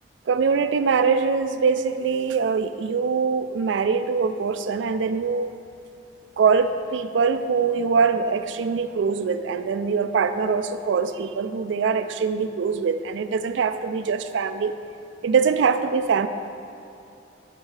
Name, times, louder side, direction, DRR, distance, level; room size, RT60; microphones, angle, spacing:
voice 1, 0.3-5.6 6.4-14.8 15.2-16.3, right 5 dB, 75° right, 10 dB, 0.4 m, -23 dB
9.0 x 4.3 x 4.7 m, 2.7 s
head